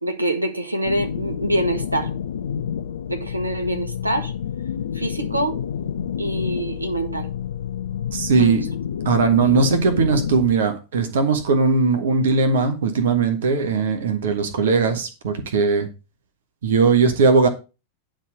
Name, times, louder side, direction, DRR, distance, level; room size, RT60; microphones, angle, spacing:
voice 1, 0.0-2.1 3.1-4.3 4.9-5.6 6.2-7.3 8.3-8.5, right 1 dB, 85° right, 1.3 m, -25 dB
sound 1, 0.8-10.6, left 8 dB, 65° left, 0.5 m, -29 dB
voice 2, 8.1-8.6 9.0-15.9 16.6-17.5, right 4 dB, 60° right, 1.5 m, -19 dB
10.0 x 3.8 x 6.7 m
figure-of-eight pair, 90°, 0 cm